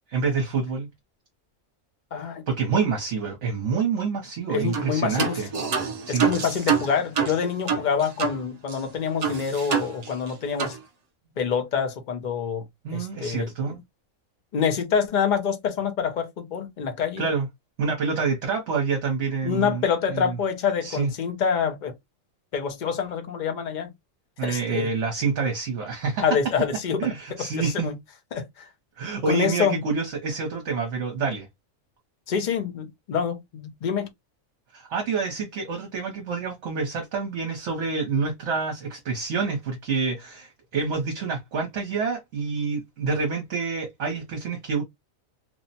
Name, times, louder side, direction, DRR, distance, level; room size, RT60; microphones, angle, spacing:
voice 1, 0.1-0.9 2.5-5.5 6.1-6.3 12.8-13.8 17.2-17.5 17.8-20.4 20.8-21.1 24.4-26.2 27.0-27.9 29.0-31.5 34.7-44.8, right 5 dB, 60° right, 1.0 m, -27 dB
voice 2, 2.1-2.4 4.5-5.4 6.1-10.8 11.4-12.6 12.9-13.7 14.5-17.3 19.4-21.9 22.5-23.9 24.4-24.9 26.2-27.0 27.6-27.9 28.3-28.7 29.3-29.8 32.3-34.1, left 6 dB, 55° left, 0.5 m, -26 dB
sound 1, 4.7-4.9 5.2-8.4 8.7-8.8 9.2-10.3 10.6-10.8, right 7 dB, 85° right, 0.3 m, -26 dB
3.1 x 2.0 x 2.6 m
omnidirectional pair, 1.4 m